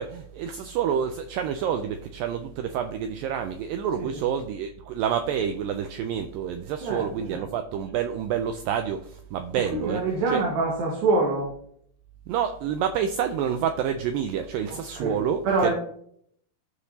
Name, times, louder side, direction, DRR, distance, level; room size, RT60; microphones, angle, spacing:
voice 1, 0.0-10.0 10.3-10.4 12.3-15.7, right 8 dB, 85° right, 7 dB, 2.0 m, -28 dB
voice 2, 4.0-4.4 6.8-7.5 9.7-11.5 14.7-15.7, right 3 dB, 70° right, -2 dB, 3.2 m, -26 dB
14.5 x 5.1 x 2.8 m, 0.63 s
omnidirectional pair, 4.6 m